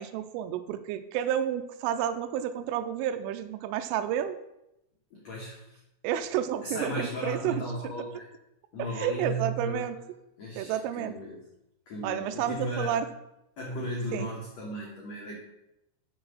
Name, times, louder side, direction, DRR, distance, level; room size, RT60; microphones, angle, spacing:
voice 1, 0.0-4.4 6.0-7.6 9.0-10.0 10.6-11.1 12.0-13.1 14.1-14.3, right 10 dB, 90° right, 9 dB, 3.2 m, -30 dB
voice 2, 5.1-5.8 6.6-8.3 8.7-9.8 10.4-11.4 11.8-13.0 13.6-15.4, equal, 70° left, -3 dB, 1.5 m, -35 dB
6.8 x 6.1 x 6.5 m, 0.86 s
omnidirectional pair, 5.7 m